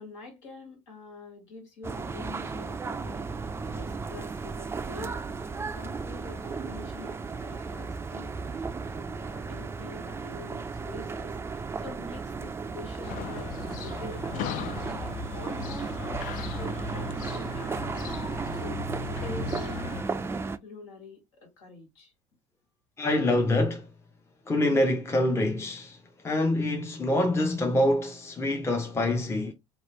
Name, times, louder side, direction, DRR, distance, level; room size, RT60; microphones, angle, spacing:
voice 1, 0.0-11.5 11.8-16.3 16.6-18.1 18.6-20.3 20.6-21.2 21.6-22.1, left 2 dB, 80° left, 1.7 m, -46 dB
sound 1, 1.8-20.6, right 4 dB, 15° right, 0.4 m, -35 dB
sound 2, 13.0-20.0, left 7 dB, 60° left, 0.5 m, -38 dB
voice 2, 23.0-23.9 24.5-26.0 26.2-29.5, left 1 dB, 15° left, 0.6 m, -25 dB
3.0 x 2.4 x 2.9 m
hypercardioid pair, 75°, 16 cm